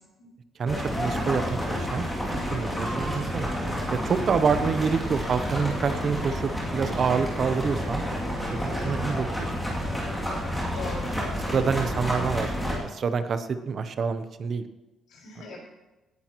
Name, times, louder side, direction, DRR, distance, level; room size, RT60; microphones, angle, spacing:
voice 1, 0.6-3.5 3.9-8.0 8.5-9.8 11.5-14.7, right 6 dB, 40° right, 11 dB, 0.6 m, -27 dB
sound 1, 0.7-12.8, equal, 5° left, 2.5 m, -30 dB
voice 2, 8.6-9.0 10.7-11.2 11.5-11.6 15.1-15.6, left 3 dB, 85° left, -2 dB, 5.0 m, -40 dB
17.5 x 10.0 x 3.0 m, 1.1 s
cardioid pair, 180°, 0 cm